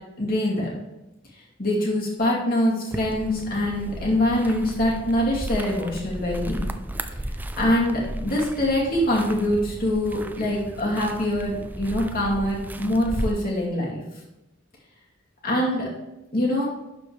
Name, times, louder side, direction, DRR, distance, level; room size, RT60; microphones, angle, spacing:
voice 1, 0.2-0.8 1.6-6.7 7.6-14.0 15.4-15.9 16.3-16.7, left 1 dB, 50° left, -4 dB, 2.3 m, -24 dB
sound 1, 2.9-13.3, right 1 dB, 10° right, 0.4 m, -35 dB
11.5 x 4.5 x 3.3 m, 0.94 s
head